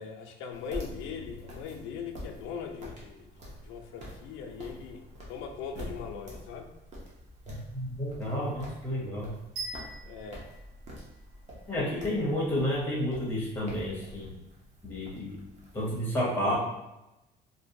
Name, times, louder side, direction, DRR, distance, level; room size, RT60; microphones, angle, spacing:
voice 1, 0.0-5.0 5.3-6.7 10.0-10.4 11.8-12.3, left 6 dB, 90° left, 4 dB, 0.4 m, -40 dB
sound 1, 0.5-16.0, equal, 35° right, 0.6 m, -46 dB
voice 2, 7.5-9.3 11.7-14.3 14.8-15.4 15.7-16.6, equal, 10° left, -4 dB, 0.6 m, -31 dB
sound 2, 9.5-11.6, right 2 dB, 70° right, 1.3 m, -41 dB
2.6 x 2.2 x 2.6 m, 0.93 s
cardioid pair, 155°, 20 cm